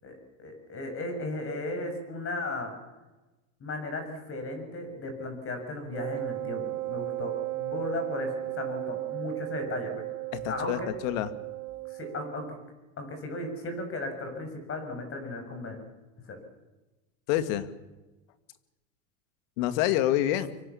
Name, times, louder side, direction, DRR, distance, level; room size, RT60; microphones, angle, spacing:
voice 1, 0.0-2.7 3.6-10.0 10.4-10.9 11.9-12.6 13.0-15.8 16.3-16.4, left 2 dB, 30° left, 6 dB, 7.4 m, -36 dB
Wind instrument woodwind instrument, 5.9-12.6, right 19 dB, 60° right, 2.4 m, -35 dB
voice 2, 10.3-11.3 17.3-17.7 19.6-20.5, left 13 dB, 65° left, 11 dB, 2.4 m, -27 dB
25.0 x 24.0 x 7.2 m, 1.1 s
supercardioid pair, 120°, 42 cm